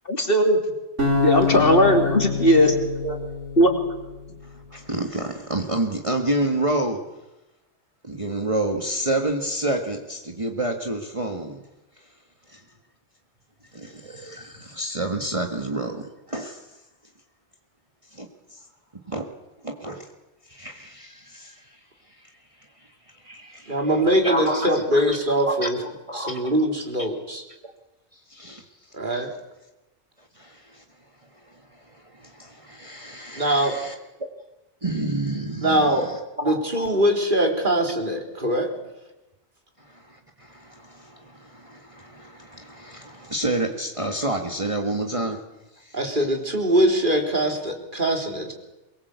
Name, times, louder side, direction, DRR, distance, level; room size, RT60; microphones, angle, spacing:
voice 1, 0.1-0.6 1.2-2.7 3.6-3.7, equal, 50° left, 4 dB, 3.2 m, -17 dB
sound 1, 1.0-4.2, left 4 dB, 85° right, 5.4 m, -26 dB
voice 2, 4.4-7.0 8.0-11.6 12.5-12.6 13.7-16.6 18.1-18.6 19.1-19.3 19.6-20.1 20.5-21.8 22.1-22.3 22.8-22.9 23.5-23.7 24.2-24.7 24.9-25.1 25.4-26.4 28.1-28.7 29.1-29.2 30.4-30.8 31.4-33.9 34.2-34.3 34.8-36.1 36.4-36.6 39.8-45.4 45.8-46.0, right 1 dB, 30° right, 3 dB, 1.8 m, -29 dB
voice 3, 23.3-25.8 26.1-27.4 28.9-29.3 33.4-33.8 35.6-36.1 36.4-38.7 45.0-45.1 45.9-48.5, right 1 dB, 45° right, 3 dB, 3.8 m, -22 dB
23.5 x 21.5 x 8.3 m, 1.0 s
omnidirectional pair, 1.2 m